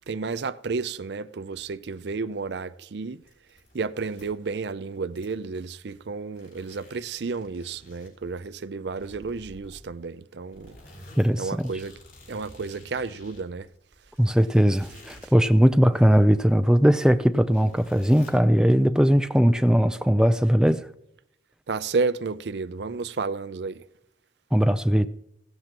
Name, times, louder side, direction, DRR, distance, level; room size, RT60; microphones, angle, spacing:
voice 1, 0.1-3.2 3.7-10.8 11.4-12.0 12.3-13.7 21.7-23.8, right 4 dB, 70° right, 0.5 m, -31 dB
sound 1, 3.1-4.6 4.9-6.1 6.3-8.5 9.0-10.1 10.5-15.5 15.9-18.5, left 1 dB, 50° left, 5.6 m, -51 dB
voice 2, 11.2-11.7 14.2-20.8 24.5-25.1, equal, 5° right, 0.4 m, -19 dB
16.5 x 13.5 x 2.9 m
head